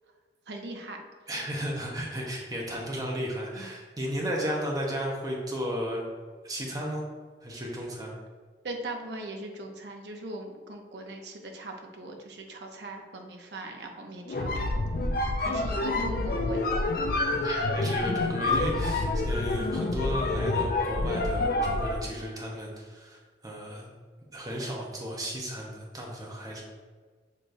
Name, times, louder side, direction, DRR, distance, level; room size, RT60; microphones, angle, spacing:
voice 1, 0.5-1.0 3.6-3.7 8.6-14.8 15.4-16.7, right 1 dB, 75° right, 3 dB, 0.6 m, -40 dB
voice 2, 1.3-6.1 6.4-7.0 7.4-8.1 17.4-23.9 24.3-26.6, equal, 20° right, -2 dB, 0.8 m, -34 dB
sound 1, 14.3-22.1, left 2 dB, 55° left, 0.4 m, -28 dB
6.7 x 3.0 x 2.6 m, 1.5 s
head